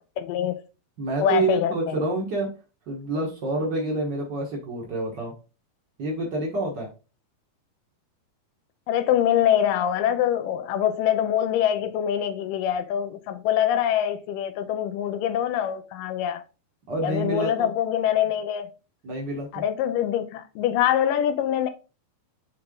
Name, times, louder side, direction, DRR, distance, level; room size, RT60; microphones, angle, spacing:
voice 1, 0.2-0.6 1.2-2.0 8.9-16.4 17.0-18.7 19.5-21.7, left 10 dB, 75° left, 2.3 m, -24 dB
voice 2, 1.0-2.6 2.9-5.3 6.0-6.9 16.9-17.7 19.0-19.6, right 2 dB, 85° right, 0.9 m, -28 dB
8.7 x 3.7 x 3.6 m
omnidirectional pair, 4.3 m